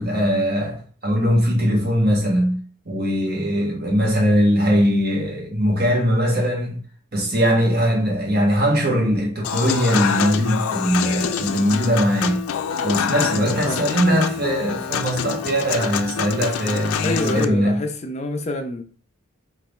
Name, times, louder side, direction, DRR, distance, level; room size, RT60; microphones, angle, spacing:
voice 1, 0.0-2.6 2.8-6.8 7.1-12.4 12.8-17.8, equal, 45° right, 1.4 m, -20 dB
Human voice / Acoustic guitar / Piano, 9.4-17.5, left 8 dB, 85° left, 0.4 m, -26 dB
voice 2, 17.0-18.8, left 2 dB, 30° left, 0.5 m, -26 dB
3.5 x 2.9 x 4.1 m
head